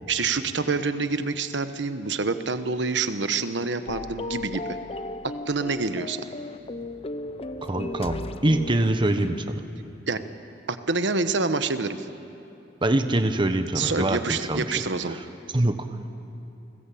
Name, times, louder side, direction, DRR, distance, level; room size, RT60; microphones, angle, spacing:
voice 1, 0.1-4.8 5.5-6.3 10.1-10.2 10.7-12.1 13.7-15.2, right 4 dB, 75° right, 10 dB, 1.2 m, -27 dB
sound 1, 3.9-9.4, left 2 dB, 35° left, 0.7 m, -35 dB
voice 2, 7.6-9.6 12.8-14.6 15.1-15.2 15.5-15.7, right 1 dB, 25° right, 8 dB, 1.1 m, -24 dB
30.0 x 20.0 x 8.6 m, 2.9 s
head